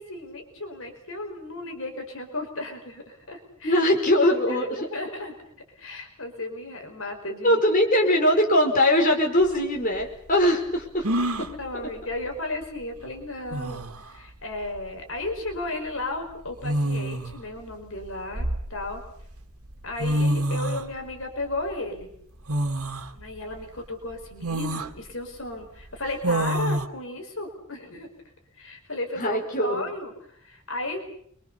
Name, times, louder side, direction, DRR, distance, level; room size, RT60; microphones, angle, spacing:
voice 1, 0.0-3.8 4.5-5.3 5.8-7.6 11.4-19.0 19.8-22.1 23.2-28.1 28.6-31.1, left 2 dB, 65° left, 4 dB, 5.2 m, -34 dB
voice 2, 3.6-4.9 7.4-11.1 11.4-11.5 11.8-11.9 29.2-29.9, left 1 dB, 35° left, 1 dB, 5.4 m, -21 dB
sound 1, 9.4-9.5 11.0-11.5 13.0-13.1 13.5-14.0 15.3-15.5 16.6-17.4 18.0-19.1 19.7-19.8 20.0-20.9 22.5-23.1 23.6-23.7 24.4-24.9 26.2-26.9, right 1 dB, 80° right, 2.1 m, -26 dB
29.0 x 24.0 x 7.0 m, 0.67 s
head